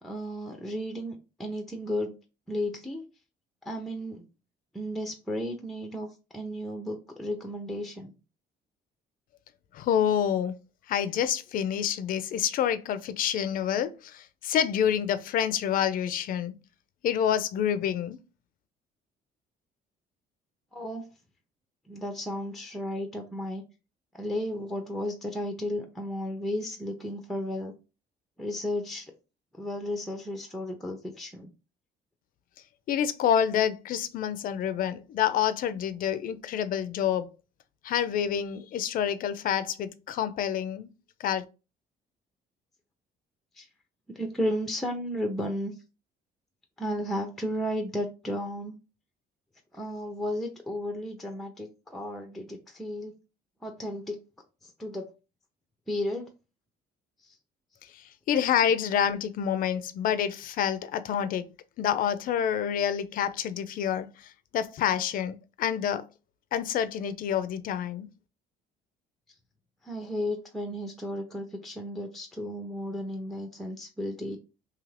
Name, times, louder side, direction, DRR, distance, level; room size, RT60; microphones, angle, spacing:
voice 1, 0.0-2.1 2.5-3.0 3.7-4.2 4.7-6.1 6.3-8.1 20.7-21.0 21.9-23.6 24.1-27.7 28.4-29.0 29.6-31.5 43.6-43.7 44.2-45.7 46.8-48.8 49.7-53.2 53.6-54.2 54.6-55.1 55.9-56.2 69.8-74.4, equal, ahead, 0.5 m, -33 dB
voice 2, 9.7-10.5 10.9-16.5 17.0-18.2 32.9-37.3 37.8-40.9 41.2-41.4 58.3-61.5 61.8-64.1 64.5-66.0 66.5-68.1, left 9 dB, 55° left, 0.4 m, -27 dB
2.8 x 2.5 x 3.2 m
cardioid pair, 110°, 17 cm